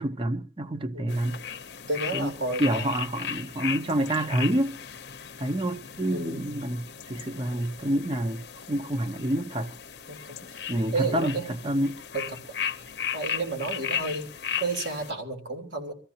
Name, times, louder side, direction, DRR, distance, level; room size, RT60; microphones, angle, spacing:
voice 1, 0.0-1.4 2.1-2.3 2.6-4.7 5.4-8.4 8.7-9.7 10.7-12.0, right 1 dB, 30° right, 0.8 m, -28 dB
sound 1, 1.1-15.1, left 8 dB, 65° left, 0.8 m, -36 dB
voice 2, 1.9-3.0 6.1-6.7 10.1-10.4 10.9-11.5 12.1-12.2 13.1-14.3 14.6-15.9, right 3 dB, 85° right, 3.4 m, -31 dB
25.0 x 14.5 x 2.9 m
head